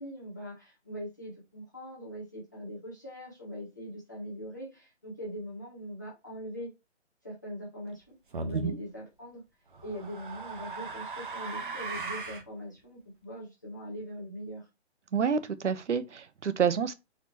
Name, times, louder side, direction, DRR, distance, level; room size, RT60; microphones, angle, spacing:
voice 1, 0.0-6.7 7.2-8.0 8.4-9.4 9.8-14.7, equal, 15° left, 0.7 m, -41 dB
sound 1, 8.3-8.7 9.7-12.5, right 3 dB, 45° right, 0.8 m, -38 dB
voice 2, 15.1-16.9, right 7 dB, 90° right, 0.8 m, -28 dB
4.2 x 2.9 x 4.1 m
hypercardioid pair, 170°, 35 cm